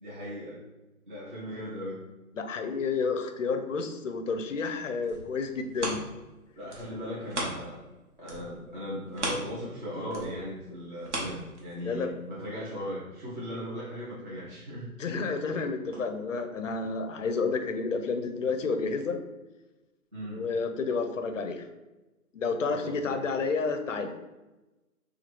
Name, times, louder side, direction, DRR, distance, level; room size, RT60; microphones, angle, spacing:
voice 1, 0.0-0.6 1.1-2.0 6.6-7.8 8.2-14.9 20.1-20.5 22.7-23.2, equal, 35° right, -8 dB, 0.7 m, -38 dB
voice 2, 2.4-6.0 11.8-12.2 15.0-19.2 20.2-21.6 22.3-24.1, left 4 dB, 60° left, 6 dB, 0.5 m, -30 dB
sound 1, 4.8-7.9 8.2-12.0 12.5-12.6, right 1 dB, 50° right, 0.9 m, -37 dB
4.3 x 2.3 x 3.0 m, 1.1 s
hypercardioid pair, 170°, 45 cm